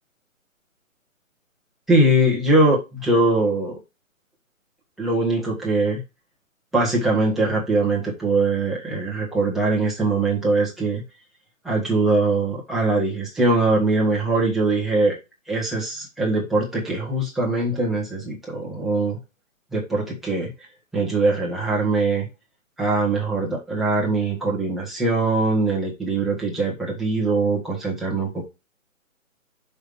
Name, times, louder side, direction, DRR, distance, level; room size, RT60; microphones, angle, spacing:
voice 1, 1.9-3.8 5.0-6.0 6.7-11.0 11.6-15.2 15.5-19.2 19.7-20.5 20.9-22.3 22.8-28.5, right 2 dB, ahead, -5 dB, 1.2 m, -22 dB
6.2 x 5.5 x 4.9 m, 0.26 s
figure-of-eight pair, 145°, 41 cm